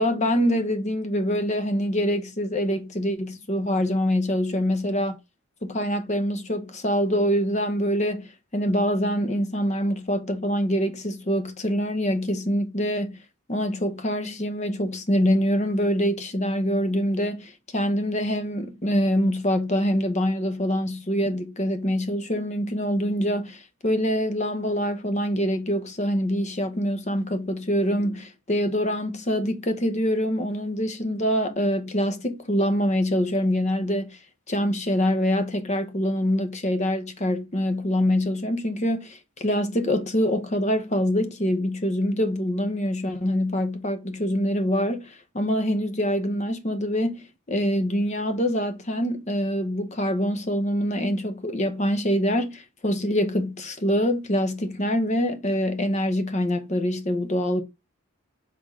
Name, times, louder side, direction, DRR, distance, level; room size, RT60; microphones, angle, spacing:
voice 1, 0.0-5.2 5.6-13.2 13.5-34.2 34.5-57.6, equal, 35° left, 0.9 m, -25 dB
5.6 x 3.8 x 4.9 m
head